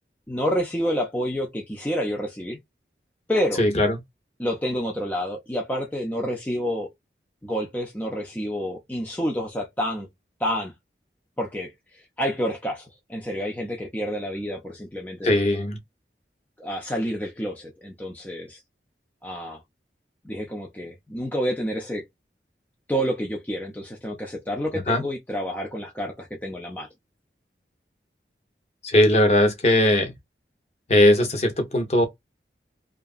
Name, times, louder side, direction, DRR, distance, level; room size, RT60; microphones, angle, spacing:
voice 1, 0.3-2.6 3.3-3.6 4.4-6.9 7.4-10.1 10.4-10.7 11.4-15.4 16.6-18.6 19.2-19.6 20.2-22.0 22.9-26.9, equal, 10° left, 0.5 m, -29 dB
voice 2, 3.6-4.0 15.2-15.8 24.9-25.0 28.8-30.1 30.9-32.1, left 1 dB, 35° left, 0.8 m, -19 dB
2.8 x 2.4 x 2.4 m
head